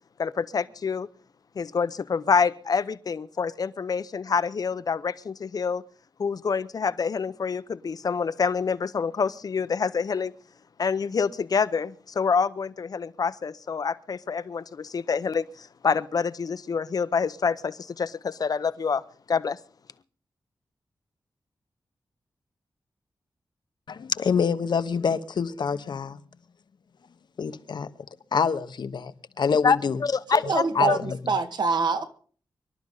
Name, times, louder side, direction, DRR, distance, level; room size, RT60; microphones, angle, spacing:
voice 1, 0.2-1.1 1.6-5.8 6.2-10.3 10.8-19.0 19.3-19.6 29.6-30.4 30.9-31.0, left 5 dB, 55° left, 0.7 m, -26 dB
voice 2, 23.9-26.2 27.4-27.9 28.3-30.0 30.4-31.2, left 6 dB, 70° left, 1.0 m, -26 dB
voice 3, 30.3-32.0, right 5 dB, 70° right, 1.8 m, -25 dB
25.0 x 12.5 x 3.9 m
wide cardioid pair, 165°, 8 cm